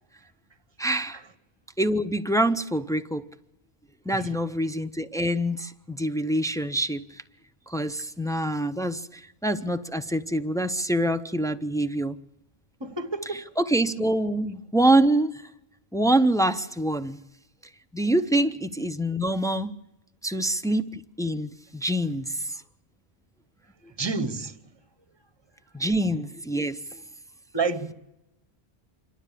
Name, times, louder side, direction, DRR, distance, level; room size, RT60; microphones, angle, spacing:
voice 1, 0.8-1.2 1.8-3.2 4.1-7.2 7.7-12.1 13.3-15.4 15.9-17.2 17.9-19.7 20.2-22.6 25.7-27.0, right 1 dB, 5° left, 0.5 m, -25 dB
voice 2, 12.8-13.4 24.0-24.6 27.5-27.9, right 4 dB, 25° right, 1.1 m, -29 dB
27.0 x 12.5 x 8.4 m
omnidirectional pair, 1.1 m